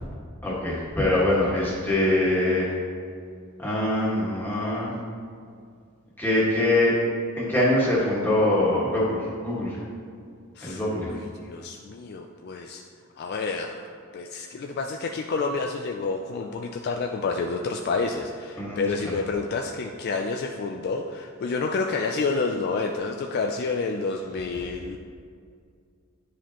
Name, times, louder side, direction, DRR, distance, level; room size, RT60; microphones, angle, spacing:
voice 1, 0.4-2.7 3.6-4.9 6.2-6.9 7.4-9.8 10.6-11.1 18.6-19.1, left 1 dB, 10° left, -7 dB, 1.6 m, -23 dB
voice 2, 10.6-12.8 13.2-13.8 14.1-25.0, left 4 dB, 45° left, 3 dB, 0.3 m, -29 dB
9.9 x 4.8 x 2.9 m, 2.2 s
head